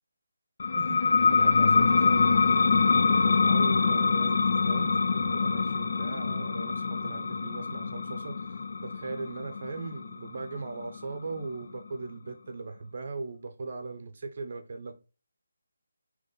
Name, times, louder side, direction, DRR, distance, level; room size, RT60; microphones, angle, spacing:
sound 1, 0.6-11.9, left 4 dB, 40° left, 0.3 m, -25 dB
voice 1, 0.8-2.3 3.1-14.9, right 3 dB, 35° right, 0.7 m, -39 dB
4.0 x 2.9 x 3.8 m
hypercardioid pair, 175°, 0 cm